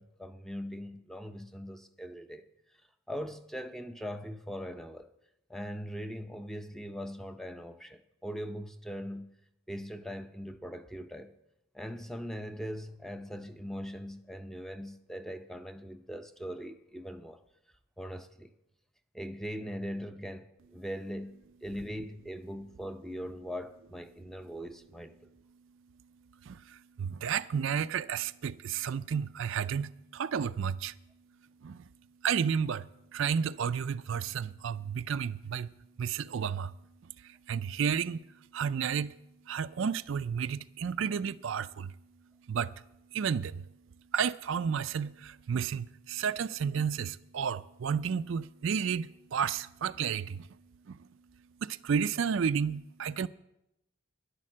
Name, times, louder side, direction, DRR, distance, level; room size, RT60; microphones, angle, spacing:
voice 1, 0.0-2.4 3.1-5.1 5.5-9.3 9.7-11.3 11.7-17.4 18.0-18.5 19.1-20.5 20.7-25.3, equal, ahead, 0.5 m, -40 dB
voice 2, 26.5-30.9 31.6-31.8 32.2-32.9 33.1-35.7 36.0-36.7 37.2-38.2 38.5-39.1 39.5-41.9 42.5-42.7 43.1-43.6 44.1-50.5 50.9-51.0 51.6-53.3, right 7 dB, 60° right, 0.4 m, -32 dB
11.0 x 10.5 x 7.4 m
head